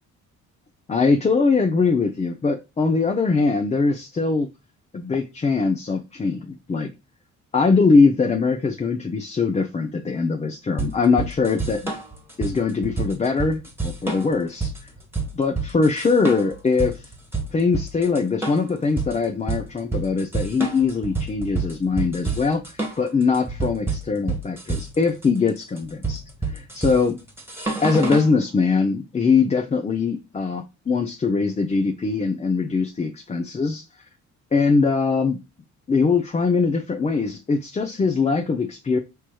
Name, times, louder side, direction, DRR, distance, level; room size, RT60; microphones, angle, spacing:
voice 1, 0.9-4.5 4.9-6.9 7.5-11.9 12.4-14.7 15.3-17.1 17.5-26.2 26.5-27.2 27.8-33.8 34.5-35.4 35.9-39.0, left 4 dB, 25° left, 0.5 m, -22 dB
sound 1, 10.8-28.3, right 3 dB, 10° right, 1.4 m, -29 dB
4.4 x 3.1 x 2.2 m
cardioid pair, 90°, 30 cm